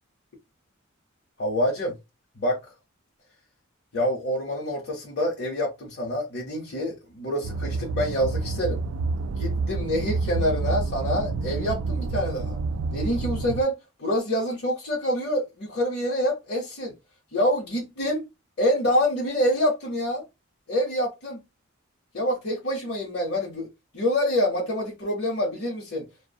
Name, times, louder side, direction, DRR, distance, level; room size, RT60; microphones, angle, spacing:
voice 1, 1.4-1.9 2.4-2.6 3.9-8.8 9.4-12.6 12.9-16.9 17.3-18.2 18.6-20.2 20.7-21.4 22.1-23.7 23.9-26.1, equal, 55° left, 0.8 m, -26 dB
sound 1, 7.4-13.6, right 3 dB, 70° right, 0.3 m, -28 dB
2.3 x 2.1 x 2.6 m
head